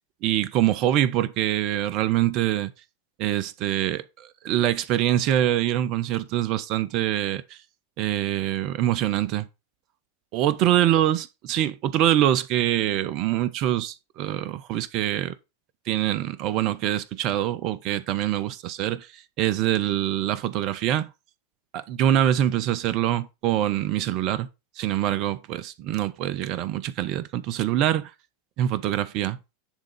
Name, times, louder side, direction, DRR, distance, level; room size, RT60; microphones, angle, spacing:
voice 1, 0.2-2.7 3.2-7.6 8.0-9.5 10.3-15.3 15.9-21.1 21.7-24.5 24.8-28.1 28.6-29.4, right 12 dB, 45° right, 0.8 m, -24 dB
10.0 x 3.8 x 5.4 m
figure-of-eight pair, 90°, 0 cm